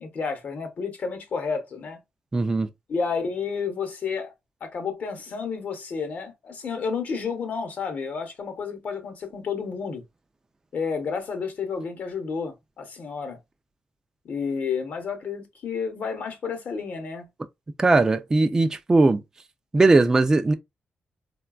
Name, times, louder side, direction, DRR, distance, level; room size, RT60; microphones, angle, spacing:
voice 1, 0.0-2.0 2.9-4.3 4.6-10.0 10.7-13.4 14.2-17.3, left 5 dB, 50° left, 0.8 m, -31 dB
voice 2, 2.3-2.7 17.8-19.2 19.7-20.5, right 3 dB, 15° right, 0.3 m, -19 dB
3.9 x 2.2 x 2.3 m
wide cardioid pair, 140°, 3 cm